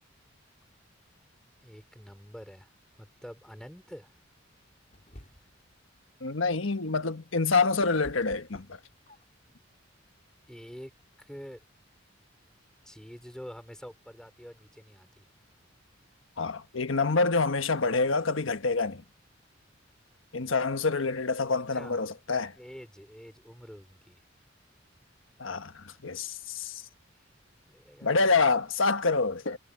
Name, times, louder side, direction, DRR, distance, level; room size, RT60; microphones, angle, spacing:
voice 1, 1.6-2.7 3.0-4.1 5.3-5.4 10.5-10.9 11.2-11.6 12.8-15.3 21.7-22.0 22.5-24.2 27.7-28.3, equal, 5° left, 4.0 m, -47 dB
sound 1, 4.9-5.7 7.2-9.5, equal, 40° left, 2.7 m, -51 dB
voice 2, 6.2-8.7 16.4-19.0 20.3-22.5 25.4-26.8 28.0-29.6, left 4 dB, 85° left, 1.3 m, -27 dB
head